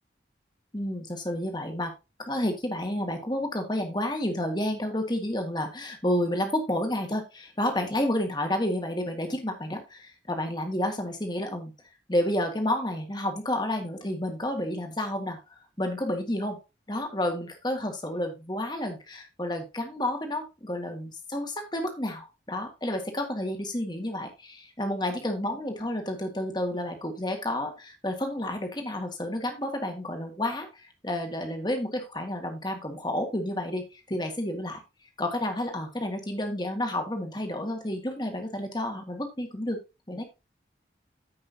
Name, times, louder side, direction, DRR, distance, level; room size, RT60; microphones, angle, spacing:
voice 1, 0.7-1.9 2.2-11.7 12.1-15.4 15.8-16.6 16.9-34.8 35.2-39.8 40.1-40.2, left 1 dB, 25° left, 4 dB, 2.0 m, -30 dB
14.5 x 5.6 x 2.8 m, 0.27 s
head